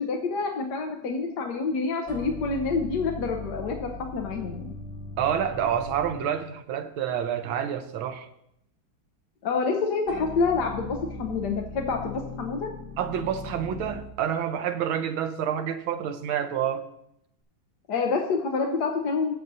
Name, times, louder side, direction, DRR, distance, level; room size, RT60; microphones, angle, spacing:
voice 1, 0.0-4.7 9.4-12.7 17.9-19.3, left 4 dB, 65° left, 1.3 m, -27 dB
sound 1, 2.1-6.5 10.1-14.2, left 2 dB, 20° right, 2.9 m, -39 dB
voice 2, 5.2-8.3 13.0-16.9, right 9 dB, 85° right, 1.6 m, -28 dB
18.5 x 7.4 x 2.7 m
omnidirectional pair, 2.2 m